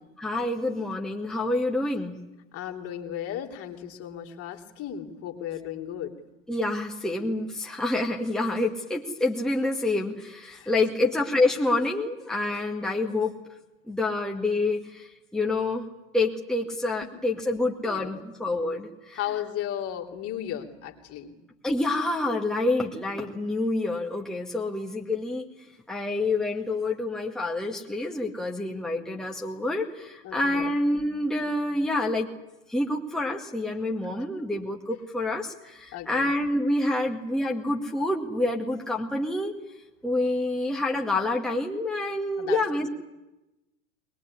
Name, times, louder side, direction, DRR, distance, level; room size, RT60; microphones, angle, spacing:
voice 1, 0.2-2.2 6.5-13.3 13.9-15.8 16.1-19.2 21.6-25.4 25.9-32.3 32.7-39.6 40.0-42.9, left 2 dB, ahead, -1 dB, 2.2 m, -27 dB
voice 2, 2.5-6.1 10.6-10.7 11.0-11.1 17.0-17.1 17.8-18.2 19.1-21.3 30.2-30.7 35.9-36.3 42.4-42.6, left 10 dB, 35° left, 4 dB, 3.3 m, -35 dB
22.0 x 21.0 x 9.9 m, 0.99 s
figure-of-eight pair, 95°, 39 cm